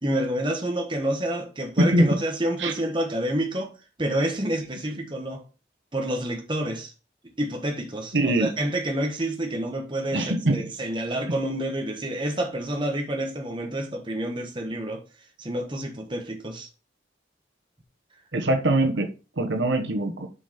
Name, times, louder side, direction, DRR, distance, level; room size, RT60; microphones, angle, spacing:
voice 1, 0.0-3.7 4.0-5.4 5.9-6.9 7.2-15.0 15.4-16.7, right 1 dB, 25° right, 1.3 m, -28 dB
voice 2, 8.1-8.5 10.1-10.7 18.3-19.1 19.4-20.3, right 1 dB, 80° right, 1.2 m, -22 dB
7.0 x 5.3 x 4.3 m
head